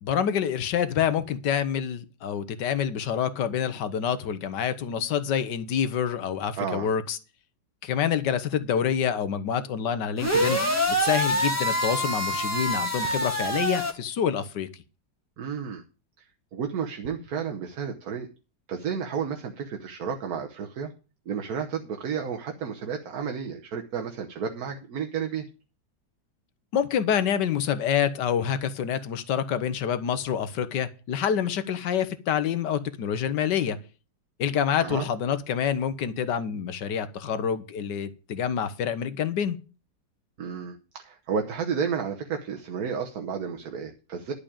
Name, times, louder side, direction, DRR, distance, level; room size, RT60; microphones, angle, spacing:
voice 1, 0.0-7.2 7.8-10.6 10.9-14.7 26.7-33.8 34.4-39.6, left 8 dB, 70° left, 12 dB, 1.6 m, -27 dB
voice 2, 6.6-6.9 15.4-15.8 16.2-16.3 16.5-18.3 18.7-20.9 21.3-25.5 34.8-35.1 40.4-44.3, right 6 dB, 55° right, 3 dB, 1.4 m, -32 dB
sound 1, 10.2-13.9, equal, 10° left, 1.8 m, -25 dB
11.5 x 5.1 x 8.6 m, 0.34 s
omnidirectional pair, 2.0 m